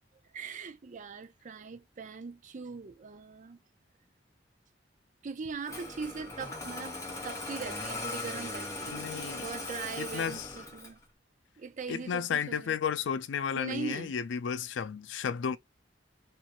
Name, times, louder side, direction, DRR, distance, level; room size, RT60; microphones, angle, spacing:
voice 1, 0.3-3.6 5.2-7.0 7.2-9.1 9.4-11.0 11.6-12.8 13.5-14.2, right 5 dB, 45° right, 0.5 m, -40 dB
Engine starting, 5.6-11.0, left 2 dB, 15° left, 1.1 m, -39 dB
voice 2, 8.9-9.4 10.0-10.5 11.9-15.6, left 7 dB, 85° left, 0.4 m, -33 dB
3.0 x 2.5 x 2.9 m
head